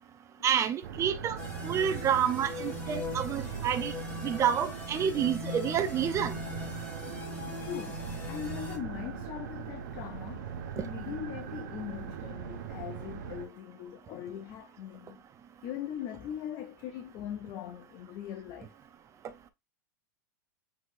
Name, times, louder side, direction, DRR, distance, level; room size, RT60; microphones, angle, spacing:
voice 1, 0.4-3.9 4.2-6.4, right 8 dB, 30° right, 0.7 m, -29 dB
sound 1, 0.8-13.5, right 7 dB, 65° right, 1.0 m, -40 dB
sound 2, 1.4-8.8, left 4 dB, 20° left, 2.1 m, -41 dB
voice 2, 7.0-15.2 15.6-18.7, left 10 dB, 45° left, 0.6 m, -41 dB
6.1 x 3.2 x 2.6 m
hypercardioid pair, 100°, 10 cm